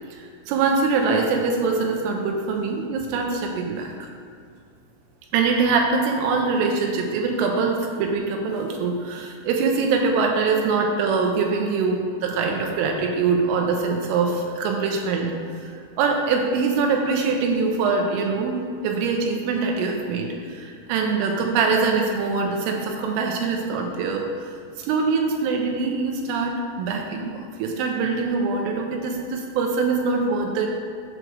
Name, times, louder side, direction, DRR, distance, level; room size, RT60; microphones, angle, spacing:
voice 1, 0.1-3.9 5.3-15.3 15.7-24.5 24.8-30.7, right 4 dB, 80° right, 2 dB, 3.1 m, -23 dB
7.7 x 5.0 x 6.2 m, 2.3 s
omnidirectional pair, 6.0 m